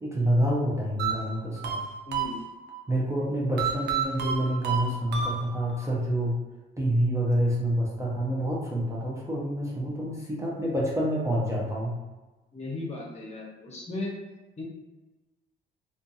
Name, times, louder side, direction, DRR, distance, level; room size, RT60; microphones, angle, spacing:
voice 1, 0.0-1.7 2.9-6.4 6.8-11.9, right 1 dB, 15° right, -4 dB, 0.6 m, -27 dB
sound 1, 1.0-2.8 3.6-5.8, right 7 dB, 60° right, 0.5 m, -30 dB
voice 2, 2.1-2.4 12.5-14.2 14.6-14.7, left 2 dB, 35° left, -2 dB, 0.8 m, -36 dB
2.5 x 2.4 x 2.6 m, 1.2 s
cardioid pair, 90°, 20 cm